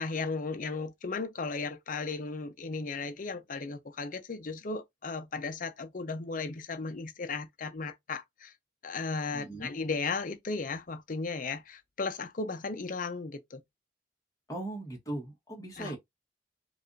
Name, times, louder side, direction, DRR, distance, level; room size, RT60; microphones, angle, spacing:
voice 1, 0.0-8.5 8.8-13.6 15.8-16.0, left 4 dB, 50° left, 0.6 m, -35 dB
voice 2, 9.3-9.7 14.5-16.0, right 1 dB, 20° left, 1.4 m, -38 dB
4.7 x 2.5 x 2.6 m
head